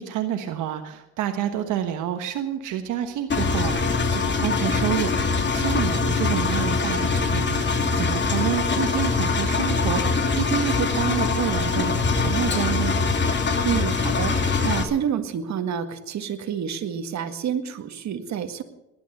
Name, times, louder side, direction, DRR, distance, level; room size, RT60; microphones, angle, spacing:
voice 1, 0.0-7.7 7.9-13.0, right 10 dB, 90° right, 6 dB, 1.3 m, -28 dB
Engine, 3.3-14.8, left 4 dB, 35° left, 2.7 m, -23 dB
voice 2, 13.6-18.6, right 8 dB, 65° right, 7 dB, 1.9 m, -28 dB
19.5 x 11.0 x 6.6 m, 0.93 s
cardioid pair, 90°, 30 cm